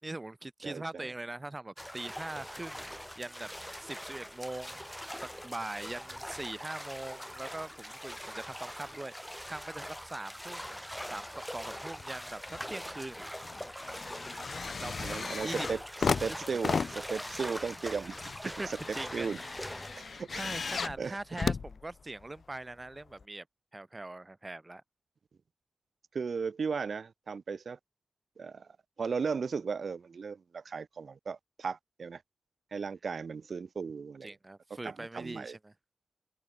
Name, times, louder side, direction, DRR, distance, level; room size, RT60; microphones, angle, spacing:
voice 1, 0.0-3.5 3.8-4.8 5.2-10.8 11.1-13.3 14.8-14.9 15.4-15.7 16.3-16.8 18.6-19.6 20.4-23.4 23.7-24.8 34.2-35.7, right 2 dB, 20° right, 3.5 m, -42 dB
voice 2, 0.6-1.0 15.0-15.8 16.2-18.2 18.7-18.8 19.1-19.4 19.9-20.4 21.0-21.2 26.1-27.8 28.4-28.7 29.0-32.2 32.7-34.3 34.8-35.6, right 5 dB, 70° right, 3.2 m, -36 dB
sound 1, 1.8-20.2, equal, 5° left, 2.3 m, -42 dB
sound 2, 12.0-12.7 13.0-22.4 23.2-23.3, left 5 dB, 65° left, 2.4 m, -36 dB
open air
wide cardioid pair, 125°, 0 cm